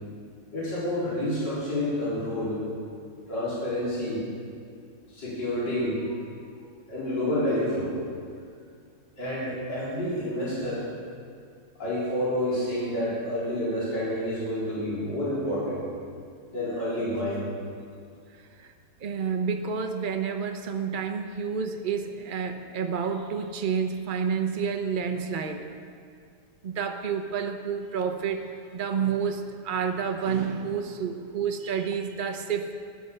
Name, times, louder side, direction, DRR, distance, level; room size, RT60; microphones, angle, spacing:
voice 1, 0.5-2.6 3.3-4.2 5.1-6.1 6.9-8.0 9.2-10.8 11.8-15.8 16.5-17.5, left 1 dB, 55° left, -9 dB, 4.7 m, -29 dB
voice 2, 19.0-25.7 26.6-32.7, right 6 dB, 75° right, 5 dB, 0.4 m, -29 dB
16.0 x 10.5 x 6.7 m, 2.2 s
omnidirectional pair, 2.3 m